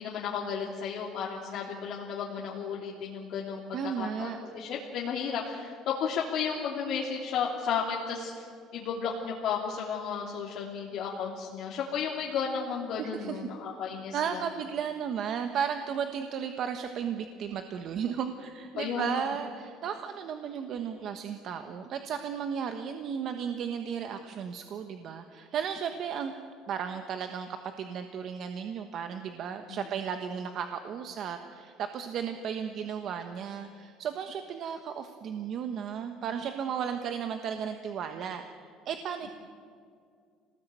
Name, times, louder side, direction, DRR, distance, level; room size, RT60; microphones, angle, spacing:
voice 1, 0.0-8.4 8.7-14.4 18.8-19.2 29.7-29.8, left 6 dB, 50° left, -3 dB, 3.1 m, -33 dB
voice 2, 3.7-4.4 13.0-13.4 14.1-26.3 26.7-38.4 38.8-39.3, right 7 dB, 40° right, 7 dB, 1.2 m, -34 dB
27.0 x 19.5 x 9.2 m, 2.3 s
cardioid pair, 170°, 0 cm